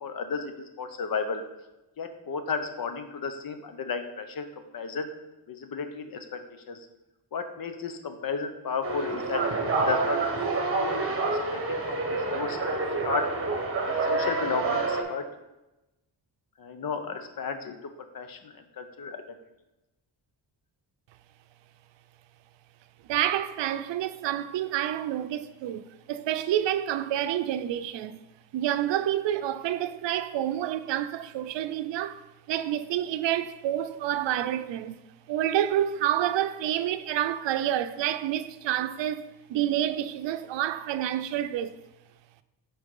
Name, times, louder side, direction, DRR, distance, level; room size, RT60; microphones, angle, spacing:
voice 1, 0.0-1.4 2.0-4.4 4.7-5.1 5.5-6.4 6.7-6.8 7.3-10.2 10.8-11.0 11.3-12.6 13.0-13.3 13.9-15.3 16.6-17.8 18.1-19.2, left 5 dB, 55° left, 0.9 m, -33 dB
sound 1, 8.8-15.0, right 3 dB, 30° right, 1.2 m, -28 dB
voice 2, 23.1-28.2 28.5-35.0 35.3-41.7, right 11 dB, 80° right, 0.6 m, -28 dB
6.3 x 4.7 x 5.4 m
cardioid pair, 115°, 43 cm